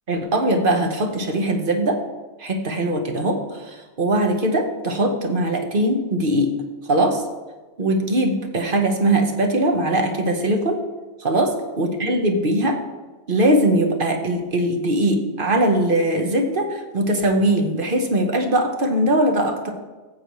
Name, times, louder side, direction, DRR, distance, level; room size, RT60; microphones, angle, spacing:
voice 1, 0.1-2.0 2.4-6.5 6.8-7.3 7.8-10.8 11.2-12.8 13.3-19.7, right 1 dB, 45° right, 4 dB, 1.2 m, -21 dB
14.5 x 8.1 x 3.1 m, 1.3 s
omnidirectional pair, 1.3 m